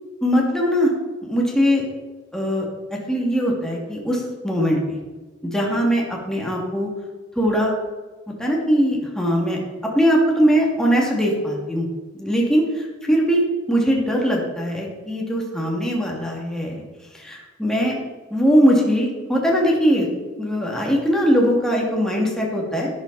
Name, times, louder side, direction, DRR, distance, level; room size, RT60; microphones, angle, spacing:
voice 1, 0.2-0.9 1.2-1.8 2.3-2.6 2.9-5.0 5.4-6.9 7.3-7.7 8.3-11.9 12.1-16.8 17.1-18.0 18.3-20.1 20.4-22.9, equal, 5° left, -2 dB, 2.6 m, -21 dB
12.5 x 10.5 x 4.3 m, 1.3 s
head